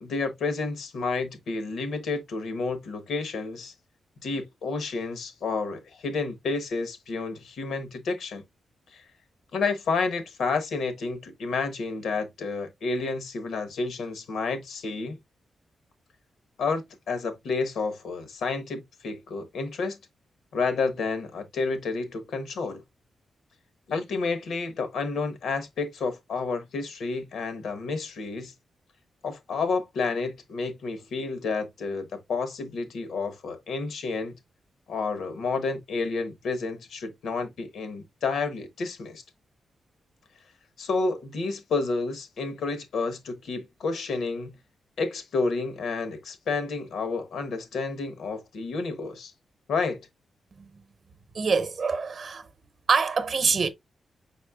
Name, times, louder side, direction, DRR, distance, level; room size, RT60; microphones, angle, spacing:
voice 1, 0.0-3.7 4.2-8.4 8.9-9.0 9.5-15.2 16.6-20.0 20.5-22.8 23.9-28.5 29.2-34.3 34.9-39.2 40.8-44.5 45.0-49.3 49.7-50.0, left 4 dB, 85° left, 1.0 m, -30 dB
voice 2, 51.3-52.4 52.9-53.7, right 5 dB, 50° right, 0.7 m, -25 dB
5.4 x 4.2 x 2.3 m
wide cardioid pair, 130°, 0 cm